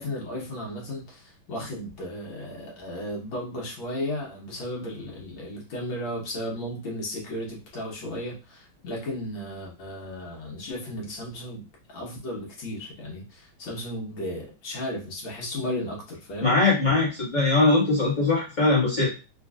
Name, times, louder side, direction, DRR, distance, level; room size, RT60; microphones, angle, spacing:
voice 1, 0.0-16.5, left 1 dB, 70° left, -3 dB, 1.9 m, -34 dB
voice 2, 16.4-19.1, left 3 dB, 25° left, -7 dB, 1.2 m, -21 dB
4.5 x 2.5 x 2.3 m, 0.31 s
omnidirectional pair, 2.3 m